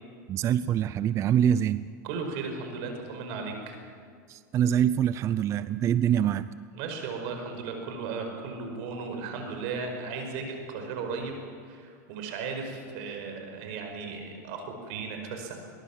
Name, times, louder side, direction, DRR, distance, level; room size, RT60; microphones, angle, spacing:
voice 1, 0.3-1.9 4.3-6.5, right 9 dB, 30° right, 15 dB, 0.5 m, -25 dB
voice 2, 2.0-3.8 6.7-11.4 11.7-15.6, right 4 dB, 55° right, 4 dB, 5.1 m, -36 dB
22.0 x 20.0 x 7.4 m, 2.2 s
supercardioid pair, 130°, 10 cm